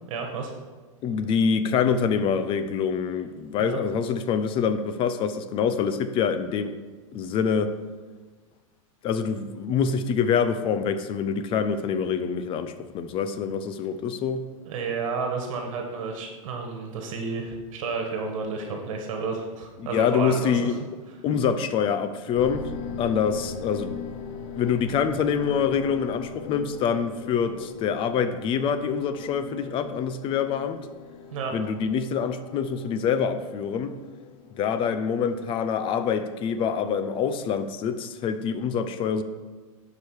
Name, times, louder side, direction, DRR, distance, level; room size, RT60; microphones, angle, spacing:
voice 1, 0.1-0.5 3.6-3.8 14.6-20.8 31.3-31.5, right 4 dB, 65° right, 2 dB, 1.5 m, -31 dB
voice 2, 1.0-6.8 7.1-7.7 9.0-14.4 19.9-20.8 21.2-22.7 23.0-24.0 24.6-30.8 31.5-33.9 34.6-39.2, left 6 dB, 30° left, 11 dB, 0.6 m, -25 dB
sound 1, 22.3-36.4, left 6 dB, 55° left, 1.0 m, -41 dB
11.0 x 4.9 x 4.8 m, 1.4 s
supercardioid pair, 140°, 18 cm